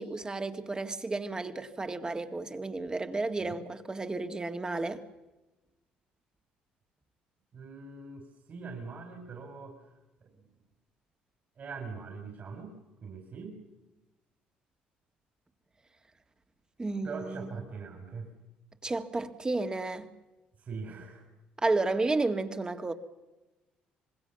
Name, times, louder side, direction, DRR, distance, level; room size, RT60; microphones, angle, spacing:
voice 1, 0.0-5.0 16.8-17.5 18.8-20.1 21.6-22.9, right 3 dB, 20° right, 2.0 m, -32 dB
voice 2, 7.5-10.5 11.6-12.8 13.0-13.6 17.0-18.3 20.6-21.3, right 4 dB, 50° right, 4.2 m, -42 dB
25.5 x 20.5 x 6.9 m
supercardioid pair, 75°, 3 cm